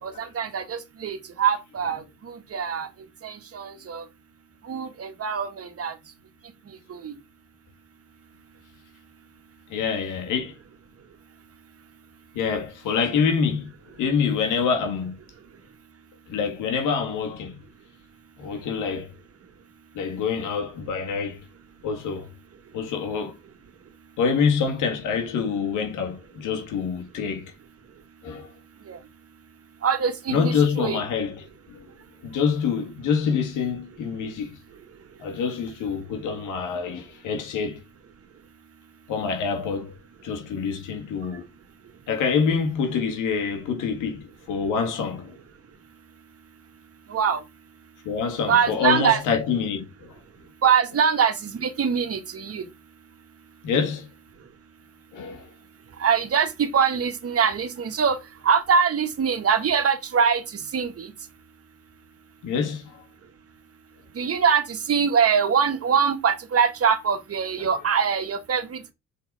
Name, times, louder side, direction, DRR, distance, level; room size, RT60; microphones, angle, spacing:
voice 1, 0.0-2.9 3.2-4.0 4.6-5.9 6.9-7.1 28.9-29.0 29.8-31.0 47.1-47.4 48.5-49.2 50.6-52.6 56.0-58.2 58.4-61.1 64.1-68.9, right 7 dB, 50° right, 1.7 m, -23 dB
voice 2, 9.7-10.6 12.3-13.7 14.0-15.1 16.3-17.6 18.4-19.1 19.9-21.4 21.8-22.3 22.7-23.4 24.2-27.5 28.2-28.5 30.3-31.9 32.2-34.6 35.2-37.8 39.1-39.9 40.2-41.5 42.1-45.4 48.0-50.2 53.6-54.1 55.1-55.5 62.4-63.0 67.6-67.7, left 6 dB, 90° left, 2.1 m, -26 dB
6.5 x 4.0 x 4.9 m
cardioid pair, 90°, 30 cm